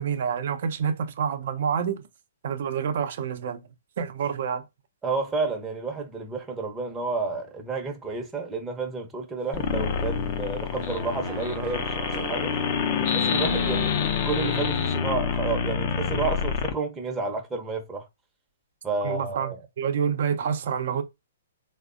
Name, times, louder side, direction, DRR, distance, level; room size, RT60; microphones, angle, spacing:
voice 1, 0.0-2.0 2.4-3.6 4.0-4.6 19.0-21.0, right 7 dB, 55° right, 0.6 m, -28 dB
voice 2, 5.0-12.6 13.0-13.9 14.2-18.1 18.8-19.6, right 4 dB, 10° right, 0.7 m, -31 dB
sound 1, 9.4-15.0, right 7 dB, 40° right, 0.9 m, -42 dB
sound 2, 9.5-16.7, left 6 dB, 45° left, 0.5 m, -27 dB
3.2 x 2.1 x 2.5 m
figure-of-eight pair, 125°, 0 cm